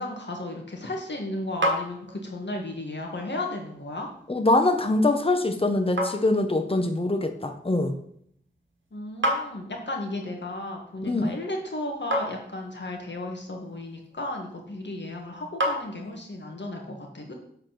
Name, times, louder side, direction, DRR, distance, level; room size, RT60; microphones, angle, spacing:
voice 1, 0.0-4.1 8.9-17.3, left 2 dB, 65° left, 1 dB, 1.7 m, -34 dB
sound 1, 0.7-16.5, equal, 80° right, 1.4 m, -35 dB
voice 2, 4.3-7.9 11.0-11.3, left 2 dB, 30° left, 6 dB, 1.0 m, -23 dB
8.1 x 4.1 x 5.8 m, 0.68 s
wide cardioid pair, 60°, 19 cm